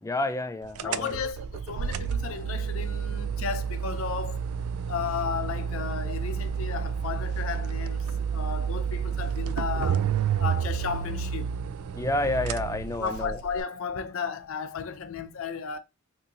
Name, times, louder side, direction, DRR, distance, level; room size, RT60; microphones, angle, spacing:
voice 1, 0.0-1.1 11.9-13.4, left 2 dB, 15° left, 0.3 m, -29 dB
sound 1, 0.7-13.6, right 7 dB, 75° right, 0.3 m, -30 dB
voice 2, 0.8-4.4 4.9-10.1 10.4-11.6 13.0-15.8, left 6 dB, 65° left, 0.5 m, -34 dB
3.8 x 2.7 x 2.7 m
head